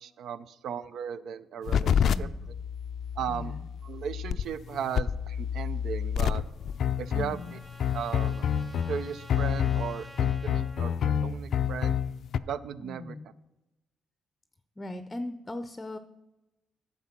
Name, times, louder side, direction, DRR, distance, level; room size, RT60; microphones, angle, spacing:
voice 1, 0.0-2.3 3.2-3.5 3.8-6.4 7.0-7.6 7.9-8.5 8.9-12.0 12.4-13.2, right 8 dB, 70° right, 16 dB, 0.5 m, -36 dB
sound 1, 1.7-12.4, left 8 dB, 65° left, 0.4 m, -28 dB
voice 2, 2.0-2.3 3.3-3.6 7.1-7.6 12.8-13.3 14.8-16.0, left 1 dB, 20° left, 11 dB, 0.6 m, -39 dB
Trumpet, 6.4-10.9, right 1 dB, 20° right, 1.5 m, -51 dB
9.5 x 7.1 x 5.9 m, 1.0 s
cardioid pair, 90°, 0 cm